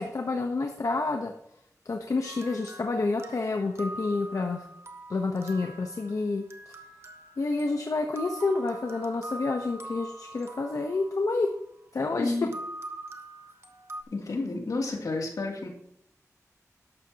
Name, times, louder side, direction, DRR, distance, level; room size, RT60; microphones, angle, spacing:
voice 1, 0.0-1.3 1.8-4.6 5.1-6.7 7.4-11.5 11.9-12.3, left 3 dB, 65° left, 4 dB, 1.1 m, -29 dB
sound 1, 2.2-11.9 12.5-14.0, right 1 dB, 45° right, 1.3 m, -43 dB
voice 2, 12.2-12.5 14.1-15.7, left 2 dB, 80° left, 0 dB, 3.0 m, -30 dB
12.5 x 11.5 x 3.0 m, 0.73 s
wide cardioid pair, 110°, 6 cm